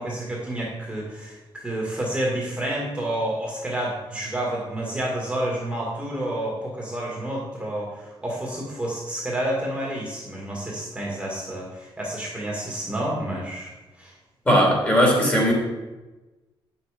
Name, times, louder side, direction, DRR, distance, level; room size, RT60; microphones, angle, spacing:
voice 1, 0.0-13.7 14.0-14.1, right 1 dB, 10° right, -4 dB, 1.9 m, -29 dB
voice 2, 14.5-15.5, equal, 20° left, -1 dB, 2.7 m, -18 dB
8.7 x 7.0 x 5.1 m, 1.1 s
wide cardioid pair, 150°, 10 cm